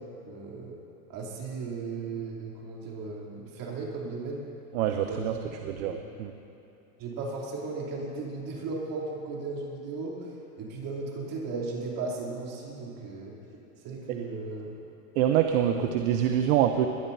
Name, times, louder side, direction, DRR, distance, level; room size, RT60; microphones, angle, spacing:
voice 1, 0.3-0.8 1.1-4.4 5.0-5.5 5.8-5.9 7.0-10.3 10.6-13.3 13.8-14.7 15.7-15.9, right 3 dB, 50° right, -3 dB, 3.2 m, -36 dB
voice 2, 4.7-5.3 5.6-6.3 15.2-16.9, right 10 dB, 70° right, 6 dB, 0.8 m, -25 dB
20.5 x 12.5 x 2.7 m, 2.9 s
hypercardioid pair, 105°, 44 cm